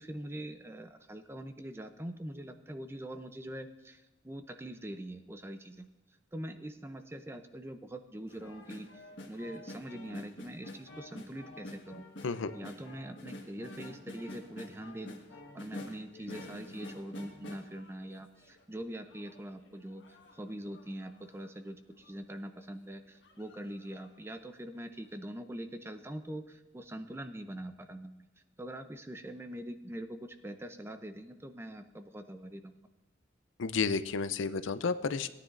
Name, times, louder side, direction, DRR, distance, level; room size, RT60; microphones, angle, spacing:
voice 1, 0.0-5.9 6.3-12.0 12.5-20.0 20.3-28.3 28.6-32.7, right 1 dB, 15° right, 9 dB, 0.5 m, -43 dB
sound 1, 8.3-18.6 19.1-21.5 22.0-22.1 22.4-22.7 23.2-24.2 24.5-24.6, left 1 dB, 65° left, 1.6 m, -48 dB
voice 2, 33.6-35.3, left 5 dB, 85° left, 13 dB, 0.5 m, -31 dB
17.0 x 9.6 x 2.5 m, 1.1 s
head